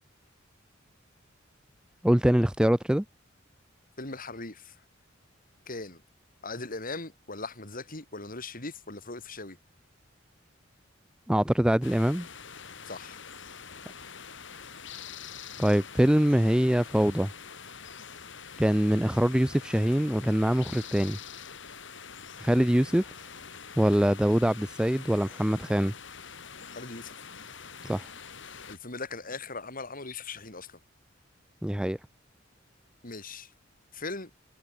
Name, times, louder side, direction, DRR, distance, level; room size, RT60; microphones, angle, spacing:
voice 1, 2.0-3.0 11.3-12.3 15.6-17.3 18.6-21.2 22.4-23.1 23.8-25.9 27.8-28.1 31.6-32.0, equal, 5° right, 0.4 m, -24 dB
voice 2, 4.0-4.7 5.7-6.0 6.4-9.6 12.8-13.2 26.8-27.1 28.7-30.8 33.0-33.5 33.9-34.3, left 3 dB, 45° left, 6.7 m, -39 dB
sound 1, 11.8-28.8, left 6 dB, 70° left, 4.8 m, -45 dB
head